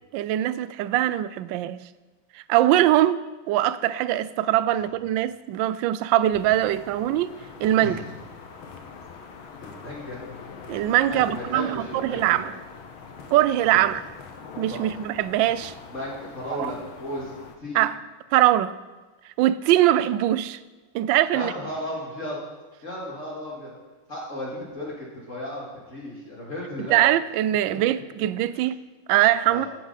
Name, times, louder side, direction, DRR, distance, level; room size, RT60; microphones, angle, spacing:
voice 1, 0.1-1.8 2.3-7.3 7.6-8.0 10.7-12.5 13.3-14.0 14.6-15.7 16.6-16.7 17.7-18.0 18.3-18.7 19.4-20.6 20.9-21.5 26.9-28.8 29.1-29.7, right 13 dB, 75° right, 1.2 m, -22 dB
sound 1, 6.3-17.6, left 5 dB, 75° left, 2.0 m, -43 dB
voice 2, 9.6-10.2 11.1-12.4 14.7-14.8 15.9-17.3 17.6-17.9 21.3-22.4 22.8-23.8 24.1-27.0 27.7-27.8 29.5-29.7, left 1 dB, 35° left, 2.7 m, -35 dB
15.0 x 10.5 x 4.1 m
omnidirectional pair, 2.3 m